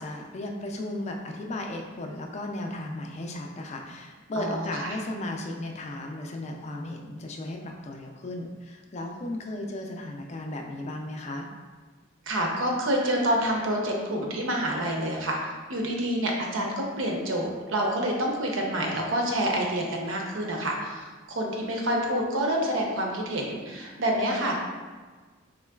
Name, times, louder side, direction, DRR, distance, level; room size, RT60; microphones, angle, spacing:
voice 1, 0.0-11.5, left 1 dB, 35° left, 2 dB, 0.3 m, -35 dB
voice 2, 4.4-5.0 12.3-24.6, right 1 dB, 80° right, 0 dB, 0.6 m, -28 dB
3.7 x 3.1 x 2.3 m, 1.4 s
head